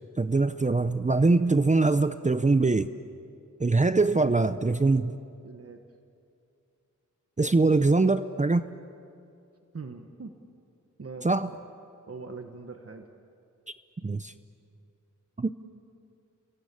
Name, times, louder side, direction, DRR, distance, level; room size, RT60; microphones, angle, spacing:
voice 1, 0.2-2.9 3.6-5.2 7.4-8.7 11.2-11.5 14.0-14.3 15.4-15.5, right 3 dB, 25° right, 11 dB, 0.7 m, -23 dB
voice 2, 5.4-5.8 9.7-10.3 11.0-11.3 12.1-13.1, right 4 dB, 50° right, 5 dB, 1.3 m, -41 dB
29.5 x 22.5 x 8.4 m, 2.5 s
wide cardioid pair, 90°, 31 cm